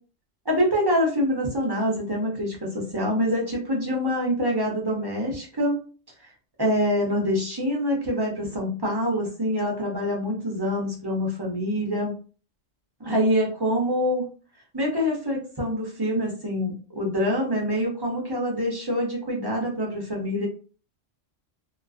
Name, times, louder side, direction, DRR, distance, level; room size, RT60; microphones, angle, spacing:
voice 1, 0.4-5.8 6.6-12.1 13.0-14.3 14.7-20.5, equal, 25° right, -2 dB, 0.5 m, -25 dB
2.4 x 2.3 x 2.3 m, 0.38 s
omnidirectional pair, 1.3 m